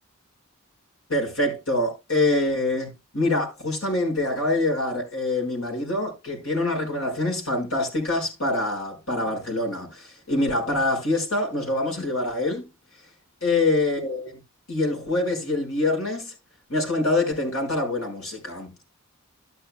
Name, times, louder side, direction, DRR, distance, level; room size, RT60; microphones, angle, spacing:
voice 1, 1.1-12.7 13.4-14.4 14.7-16.3 16.7-18.9, left 2 dB, 65° left, 5.8 m, -25 dB
12.0 x 11.0 x 2.3 m
head